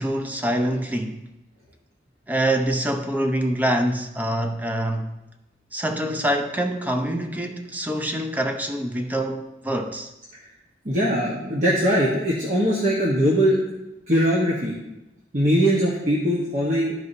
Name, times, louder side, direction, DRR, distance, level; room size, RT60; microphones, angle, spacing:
voice 1, 0.0-1.3 2.3-5.2 5.7-10.1, right 1 dB, 10° right, 0.5 m, -25 dB
voice 2, 10.8-13.6 14.1-14.7 15.3-16.9, equal, 45° right, 1.2 m, -21 dB
13.0 x 4.6 x 2.7 m
head